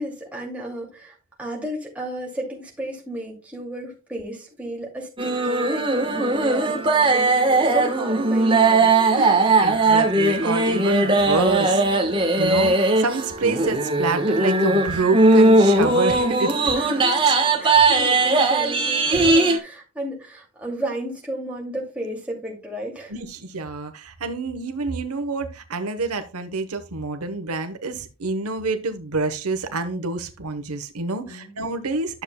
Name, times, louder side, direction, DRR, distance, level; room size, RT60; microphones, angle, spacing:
voice 1, 0.0-7.3 7.6-8.9 16.7-23.1 31.2-31.5, right 1 dB, 5° right, -2 dB, 2.4 m, -33 dB
sound 1, 5.2-19.6, right 2 dB, 25° right, 1.2 m, -19 dB
voice 2, 9.2-11.8 12.3-16.5 17.3-17.4 17.8-17.9 19.1-19.3 23.1-32.2, right 3 dB, 90° right, 9 dB, 1.0 m, -27 dB
11.0 x 6.9 x 2.2 m, 0.31 s
head